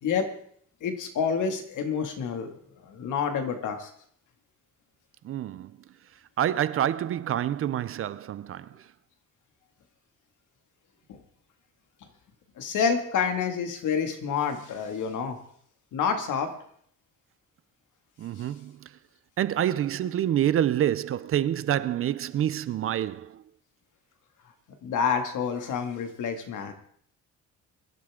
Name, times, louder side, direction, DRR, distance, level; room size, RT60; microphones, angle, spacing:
voice 1, 0.8-2.5 2.8-3.9 11.1-11.2 12.6-15.4 15.9-16.5 24.8-26.7, left 6 dB, 70° left, 2.2 m, -28 dB
voice 2, 5.2-5.7 6.4-8.8 18.2-18.9 19.4-23.4, right 11 dB, 45° right, 0.5 m, -27 dB
23.0 x 12.0 x 3.7 m
cardioid pair, 170°, 31 cm